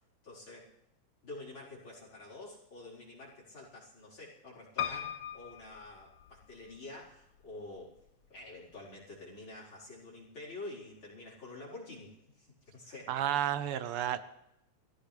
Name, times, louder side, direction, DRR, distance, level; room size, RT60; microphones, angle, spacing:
voice 1, 0.2-0.7 1.2-8.0 8.3-13.2, left 2 dB, 45° left, -4 dB, 5.2 m, -48 dB
Piano, 4.8-6.8 7.4-8.1 8.4-8.5 8.7-8.8, left 9 dB, 70° left, 1.5 m, -39 dB
voice 2, 13.1-14.2, right 11 dB, 75° right, 12 dB, 1.3 m, -31 dB
23.0 x 15.5 x 3.4 m, 0.84 s
omnidirectional pair, 3.3 m